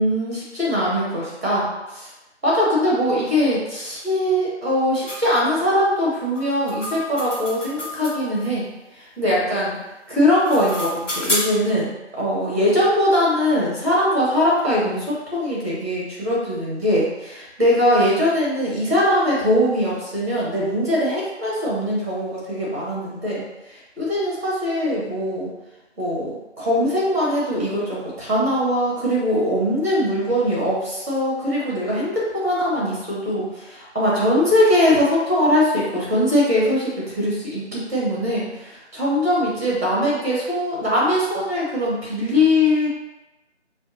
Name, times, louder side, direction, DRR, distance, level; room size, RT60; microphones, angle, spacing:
voice 1, 0.0-2.1 2.4-9.8 10.1-11.9 12.2-25.5 26.0-42.9, left 1 dB, 15° right, -6 dB, 1.0 m, -21 dB
sound 1, 5.1-5.2 6.4-8.5 10.1-11.7, left 1 dB, 85° left, 1.3 m, -29 dB
4.3 x 2.5 x 2.7 m, 0.99 s
figure-of-eight pair, 165°, 35 cm